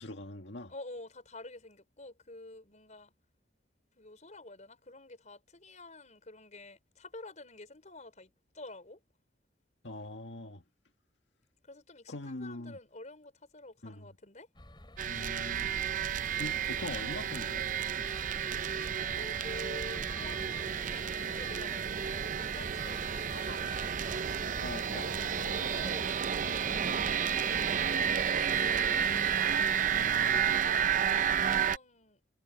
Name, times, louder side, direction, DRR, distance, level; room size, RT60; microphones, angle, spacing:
voice 1, 0.0-0.7 9.8-10.6 12.1-12.8 13.8-14.1 15.1-15.8 16.4-17.7 24.6-25.1 29.9-30.6, left 2 dB, 85° left, 1.9 m, -42 dB
voice 2, 0.7-3.1 3.9-9.0 11.6-14.5 18.8-24.0 24.8-26.2 26.6-28.7 30.1-30.8 31.1-32.2, left 2 dB, 45° left, 5.2 m, -49 dB
sound 1, 14.5-29.4, left 2 dB, 25° left, 4.8 m, -51 dB
sound 2, 15.0-31.8, right 8 dB, 45° right, 0.6 m, -31 dB
head